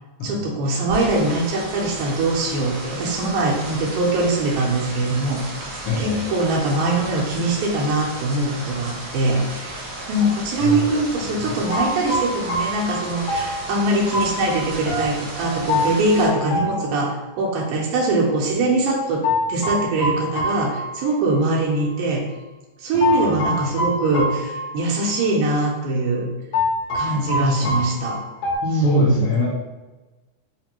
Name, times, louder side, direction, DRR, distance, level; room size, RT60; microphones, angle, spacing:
voice 1, 0.2-22.2 22.8-26.3 26.9-28.2 28.6-29.3, right 2 dB, 85° right, -2 dB, 2.3 m, -22 dB
sound 1, 0.9-16.3, right 2 dB, 70° right, 1.4 m, -34 dB
voice 2, 5.8-6.2 10.6-11.6 22.9-23.7 27.1-27.9 28.7-29.5, left 2 dB, 80° left, -8 dB, 1.3 m, -26 dB
sound 2, 11.7-17.5 19.2-21.5 21.8-21.9 23.0-25.3 25.6-25.7 26.5-28.6, left 1 dB, 65° left, 1.6 m, -26 dB
5.0 x 2.2 x 2.9 m, 1.2 s
omnidirectional pair, 3.6 m